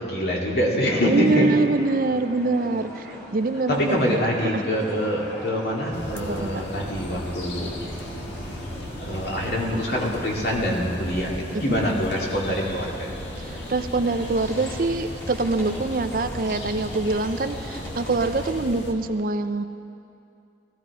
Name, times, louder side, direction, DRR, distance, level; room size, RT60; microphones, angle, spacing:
voice 1, 0.0-1.5 3.7-7.7 9.0-13.1, equal, 60° left, -3 dB, 2.4 m, -25 dB
sound 1, 0.8-18.5, equal, 15° left, 2.7 m, -40 dB
voice 2, 1.1-4.2 4.5-4.6 6.1-6.5 11.7-11.8 13.4-19.6, right 3 dB, 50° right, 9 dB, 0.5 m, -24 dB
in the forest, 5.9-18.9, left 1 dB, 85° left, 1.6 m, -36 dB
18.0 x 14.0 x 4.9 m, 2.6 s
head